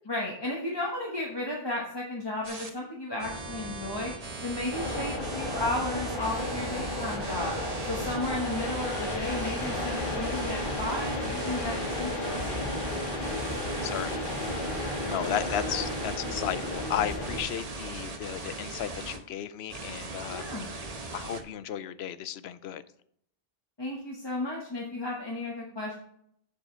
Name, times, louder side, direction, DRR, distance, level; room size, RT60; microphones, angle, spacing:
voice 1, 0.0-4.1 4.4-7.5 7.8-12.5 15.2-15.3 20.3-20.7 23.8-25.9, left 2 dB, 25° left, -3 dB, 1.2 m, -34 dB
sound 1, 2.4-2.7 3.2-19.2 19.7-21.4, right 3 dB, 40° right, 1.0 m, -39 dB
sound 2, 4.7-17.4, left 1 dB, 55° left, 1.8 m, -33 dB
voice 2, 13.8-14.3 15.0-20.5 21.1-22.8, left 10 dB, 85° left, 15 dB, 0.8 m, -34 dB
7.2 x 7.1 x 4.4 m, 0.69 s
omnidirectional pair, 1.0 m